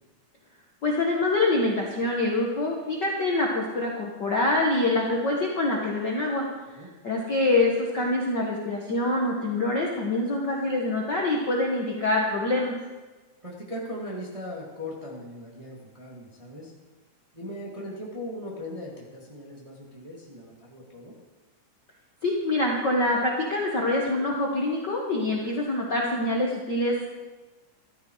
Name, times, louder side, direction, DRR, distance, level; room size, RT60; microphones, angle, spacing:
voice 1, 0.8-6.5 7.0-12.7 22.2-27.1, left 2 dB, 45° left, -2 dB, 1.5 m, -25 dB
voice 2, 13.4-16.7 17.3-21.1, left 1 dB, 15° right, -3 dB, 1.7 m, -39 dB
14.0 x 13.5 x 4.7 m, 1.3 s
omnidirectional pair, 3.8 m